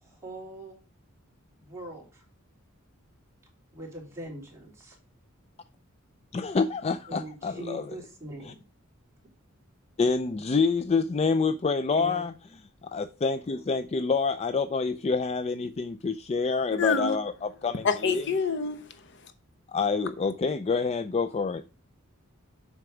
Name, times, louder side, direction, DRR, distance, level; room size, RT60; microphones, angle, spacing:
voice 1, 0.0-0.8 1.5-2.2 3.7-5.0 7.1-8.6 11.9-12.2, right 1 dB, 15° right, 3.1 m, -41 dB
voice 2, 6.3-7.9 8.4-8.5 10.0-12.3 12.8-18.2 19.7-21.6, left 4 dB, 30° left, 0.3 m, -27 dB
voice 3, 16.7-17.2 17.8-19.3, left 4 dB, 55° left, 0.8 m, -28 dB
7.7 x 5.8 x 4.9 m
head